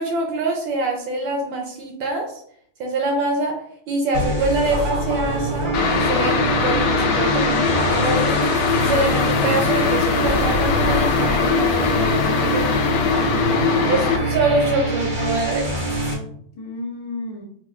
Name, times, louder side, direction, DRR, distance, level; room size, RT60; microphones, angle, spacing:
voice 1, 0.0-2.4 2.8-12.6 13.9-15.8, right 2 dB, 75° right, 2 dB, 1.2 m, -25 dB
sound 1, 4.1-16.1, right 1 dB, 50° right, 0.5 m, -24 dB
sound 2, 5.7-14.2, left 6 dB, 90° left, 0.9 m, -21 dB
voice 2, 12.4-14.1 16.5-17.4, left 2 dB, 65° left, -1 dB, 1.2 m, -34 dB
5.1 x 2.3 x 2.4 m, 0.65 s
omnidirectional pair, 2.4 m